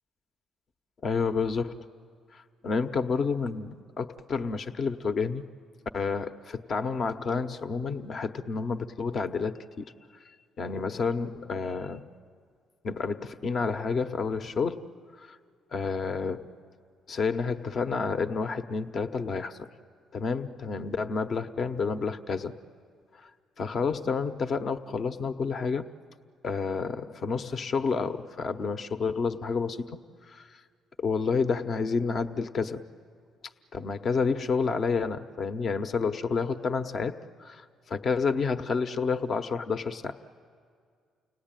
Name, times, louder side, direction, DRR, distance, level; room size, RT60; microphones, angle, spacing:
voice 1, 1.0-1.8 2.3-5.4 5.9-9.9 10.6-12.1 12.8-14.9 15.2-15.4 15.7-16.5 17.1-19.7 20.1-22.5 23.2-23.3 23.6-25.9 26.4-30.0 30.3-30.5 31.0-32.8 33.7-40.2, left 5 dB, 55° left, 8 dB, 0.9 m, -30 dB
30.0 x 18.5 x 9.1 m, 2.1 s
hypercardioid pair, 55°, 0 cm